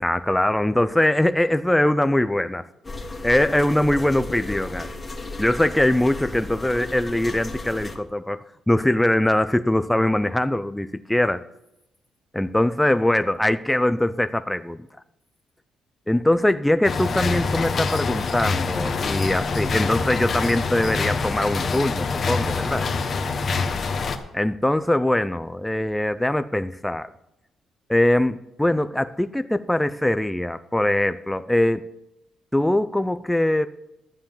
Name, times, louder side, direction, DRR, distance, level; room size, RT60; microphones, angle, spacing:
voice 1, 0.0-2.7 3.2-4.9 5.4-11.4 12.3-14.9 16.1-22.8 24.3-27.1 27.9-31.8 32.5-33.7, left 1 dB, 5° left, 11 dB, 0.5 m, -22 dB
sound 1, 2.8-8.0, left 2 dB, 20° left, 1.9 m, -34 dB
sound 2, 16.8-24.2, left 4 dB, 45° left, 1.3 m, -25 dB
11.5 x 7.6 x 7.3 m, 0.88 s
cardioid pair, 90°, 0 cm